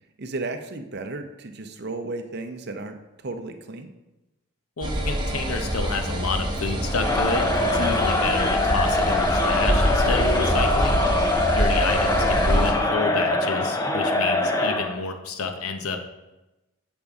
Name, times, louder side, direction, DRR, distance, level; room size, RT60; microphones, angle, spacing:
voice 1, 0.2-3.0 3.2-3.9, right 3 dB, 45° right, 6 dB, 0.6 m, -34 dB
voice 2, 4.8-11.0 11.5-16.0, left 4 dB, 75° left, 6 dB, 0.7 m, -29 dB
sound 1, 4.8-12.7, right 1 dB, 20° right, 0.9 m, -25 dB
Crowd, 6.9-15.0, left 2 dB, 15° left, 0.4 m, -23 dB
8.4 x 5.2 x 3.5 m, 1.0 s
head